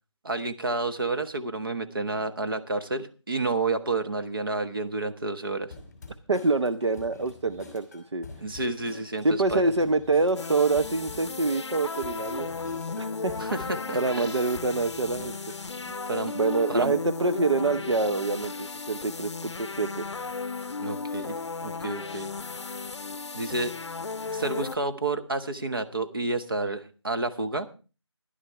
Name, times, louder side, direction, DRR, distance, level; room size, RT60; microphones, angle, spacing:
voice 1, 0.2-5.7 8.4-9.6 13.4-14.0 16.1-16.4 16.7-16.9 20.8-22.3 23.3-23.8 24.3-27.7, right 3 dB, 50° right, 8 dB, 1.2 m, -30 dB
sound 1, 5.7-15.6, left 2 dB, 10° left, 2.3 m, -47 dB
voice 2, 6.3-8.3 9.2-12.5 13.0-13.4 13.9-15.4 16.3-20.0, right 3 dB, 65° right, 10 dB, 0.7 m, -26 dB
sound 2, 10.4-24.8, left 4 dB, 65° left, 0.6 m, -35 dB
13.0 x 11.5 x 4.6 m, 0.34 s
figure-of-eight pair, 180°, 15 cm